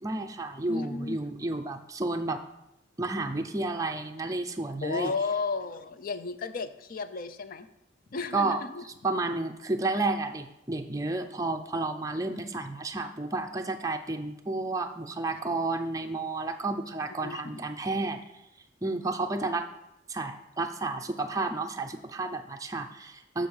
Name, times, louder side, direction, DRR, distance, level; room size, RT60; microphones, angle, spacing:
voice 1, 0.0-2.4 3.0-5.1 8.3-8.6 9.0-18.2 18.8-19.7 20.1-23.5, right 2 dB, 20° right, 5 dB, 0.5 m, -31 dB
voice 2, 0.7-1.2 4.8-7.7 8.1-8.9 12.3-12.5 15.3-15.4 17.1-17.6, left 4 dB, 50° left, 11 dB, 0.5 m, -34 dB
6.8 x 6.4 x 4.7 m, 0.85 s
head